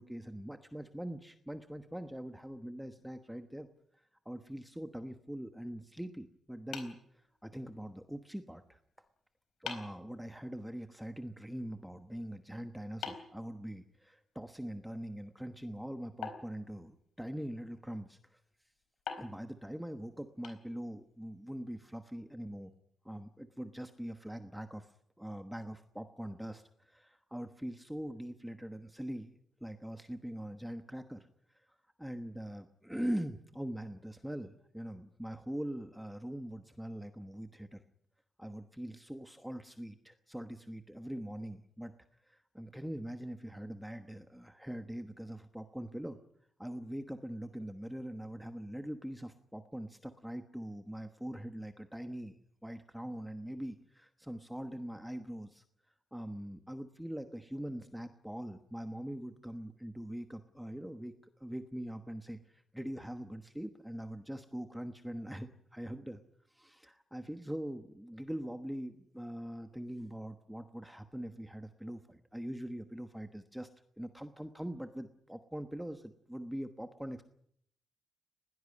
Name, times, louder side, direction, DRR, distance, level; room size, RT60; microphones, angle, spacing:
voice 1, 0.0-3.7 4.2-8.8 9.6-18.4 19.2-22.7 23.0-29.3 29.6-31.3 31.5-37.8 38.4-41.9 42.3-46.2 46.6-55.6 56.1-61.1 61.4-66.2 66.5-73.7 74.0-77.2, equal, 5° right, 8 dB, 1.2 m, -42 dB
sound 1, 6.7-7.8 9.1-9.2 9.7-10.1 13.0-14.2 16.2-17.3 19.1-21.1, left 7 dB, 85° left, 4.2 m, -46 dB
21.0 x 17.5 x 9.7 m, 0.68 s
wide cardioid pair, 145°, 0 cm